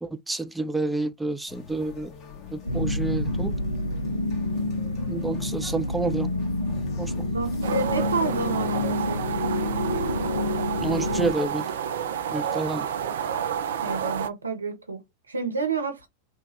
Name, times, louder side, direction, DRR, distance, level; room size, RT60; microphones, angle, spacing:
voice 1, 0.0-2.1 2.5-3.5 5.1-6.3 7.0-7.3 10.8-11.7 12.3-12.9, right 3 dB, 5° right, 0.3 m, -29 dB
sound 1, 1.5-11.5, left 5 dB, 40° left, 1.2 m, -45 dB
sound 2, 2.7-11.3, left 1 dB, 85° left, 0.5 m, -28 dB
voice 2, 7.3-9.4 13.8-16.1, right 4 dB, 85° right, 0.8 m, -30 dB
sound 3, 7.6-14.3, right 8 dB, 65° right, 0.4 m, -30 dB
3.4 x 2.3 x 3.3 m
figure-of-eight pair, 90°, 0 cm